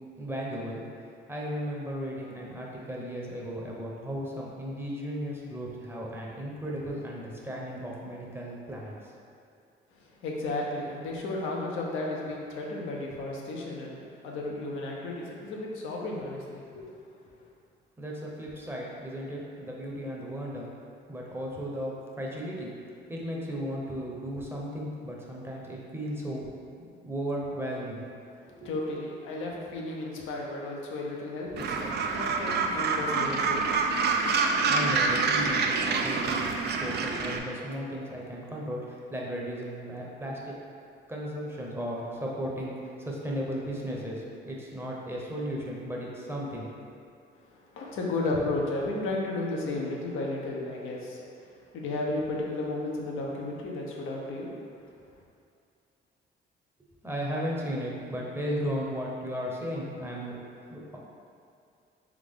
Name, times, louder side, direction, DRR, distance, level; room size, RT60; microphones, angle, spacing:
voice 1, 0.2-0.8 1.3-9.0 18.0-20.7 21.1-22.7 23.1-26.5 27.0-28.0 28.5-28.7 34.5-36.4 36.8-40.5 41.1-46.7 56.8-60.3 60.7-61.0, equal, 10° right, -3 dB, 0.8 m, -35 dB
voice 2, 10.2-16.9 28.6-33.7 47.8-51.2 51.7-54.5, left 2 dB, 85° left, -2 dB, 0.7 m, -33 dB
Gull seagull, 31.6-37.4, right 4 dB, 55° right, 0.4 m, -27 dB
3.6 x 3.5 x 3.6 m, 2.5 s
cardioid pair, 90°, 20 cm